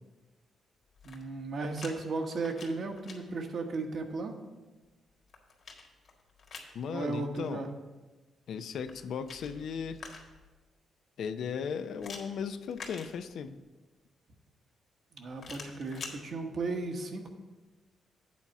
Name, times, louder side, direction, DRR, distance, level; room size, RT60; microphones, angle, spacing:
sound 1, 0.9-1.9 2.3-3.2 4.9-6.8 8.7-10.5 12.0-13.6 15.4-16.2, left 4 dB, 55° left, 1.7 m, -47 dB
voice 1, 1.0-4.3 6.9-7.7 15.1-17.3, right 3 dB, 55° right, 4 dB, 1.1 m, -35 dB
voice 2, 6.7-7.6 8.5-10.0 11.2-13.6, left 6 dB, 70° left, 10 dB, 0.5 m, -36 dB
8.3 x 4.1 x 7.0 m, 1.2 s
cardioid pair, 110°, 0 cm